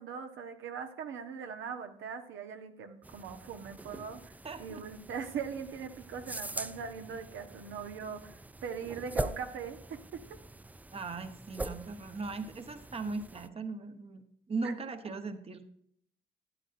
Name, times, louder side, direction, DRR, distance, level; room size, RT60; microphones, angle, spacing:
voice 1, 0.0-10.4 14.6-14.7, right 6 dB, 80° right, 6 dB, 1.1 m, -41 dB
sound 1, 3.0-13.5, right 2 dB, 10° right, 0.3 m, -43 dB
voice 2, 4.4-4.8 10.9-14.2 14.5-15.6, right 3 dB, 30° right, 8 dB, 1.0 m, -38 dB
13.0 x 9.2 x 2.6 m, 0.69 s
cardioid pair, 90°, 20 cm